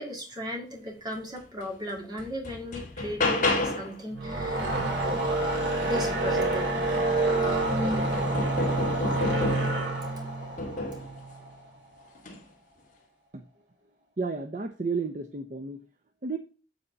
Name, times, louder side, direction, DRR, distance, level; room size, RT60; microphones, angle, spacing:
voice 1, 0.0-4.7 5.8-6.7, left 1 dB, 25° right, 1 dB, 2.1 m, -36 dB
sound 1, 1.6-1.7 2.2-4.0 6.4-6.5 6.9-9.9 10.6-11.1 12.1-12.4, left 2 dB, 45° left, 1.8 m, -31 dB
sound 2, 4.1-11.5, right 2 dB, 65° right, 3.1 m, -27 dB
voice 2, 14.2-15.8 16.2-16.4, right 4 dB, 40° right, 6 dB, 0.7 m, -32 dB
8.1 x 4.3 x 5.4 m, 0.36 s
head